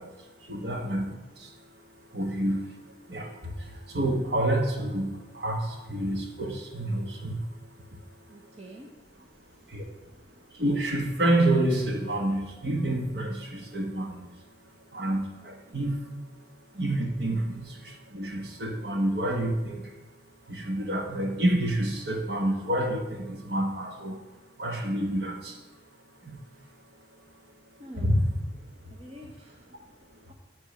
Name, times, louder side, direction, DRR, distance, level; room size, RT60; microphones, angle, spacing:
voice 1, 0.0-8.6 9.5-10.0 10.4-28.2 28.9-29.0 29.8-30.3, right 1 dB, 60° right, 2 dB, 1.3 m, -30 dB
voice 2, 8.3-10.2 27.8-28.2 28.9-29.7 30.3-30.4, right 1 dB, 35° right, 0 dB, 0.8 m, -48 dB
7.5 x 5.2 x 5.9 m, 1.2 s
head